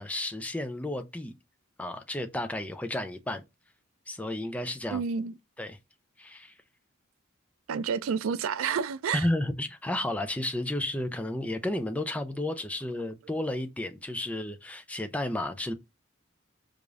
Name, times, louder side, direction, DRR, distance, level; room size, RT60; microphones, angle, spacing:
voice 1, 0.0-1.3 1.8-3.4 4.1-5.0 5.6-5.8 6.2-6.5 9.1-15.7, left 1 dB, 5° left, 0.4 m, -32 dB
voice 2, 4.9-5.3 7.7-9.3, right 6 dB, 75° right, 0.4 m, -29 dB
4.9 x 2.5 x 2.4 m
head